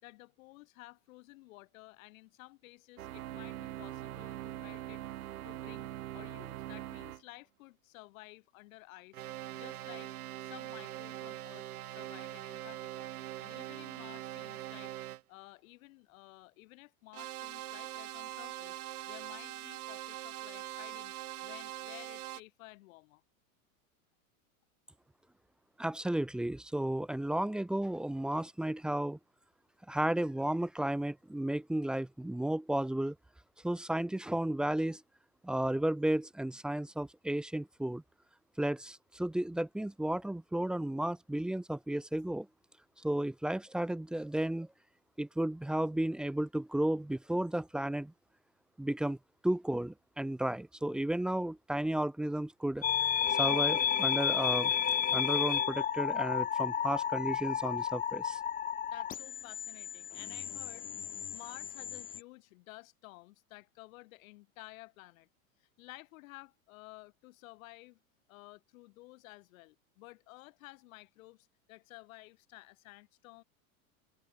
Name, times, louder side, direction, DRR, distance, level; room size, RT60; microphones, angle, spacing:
voice 1, 0.0-5.0 5.4-9.2 9.5-10.1 10.4-13.1 13.4-15.0 15.3-18.8 19.1-21.1 21.4-23.2 58.9-65.3 65.6-68.0 68.3-73.4, left 21 dB, 70° left, 5.4 m, -54 dB
sound 1, 3.0-7.2 9.1-15.2 17.1-22.4, right 14 dB, 85° right, 1.7 m, -42 dB
voice 2, 25.8-29.2 29.9-33.2 33.6-35.0 35.4-38.0 38.6-42.5 43.0-44.7 45.2-48.1 48.8-49.2 49.4-52.8 53.3-54.7 55.1-58.4, right 1 dB, ahead, 0.3 m, -33 dB
sound 2, 52.8-62.2, left 9 dB, 20° left, 0.8 m, -32 dB
supercardioid pair, 115°, 43 cm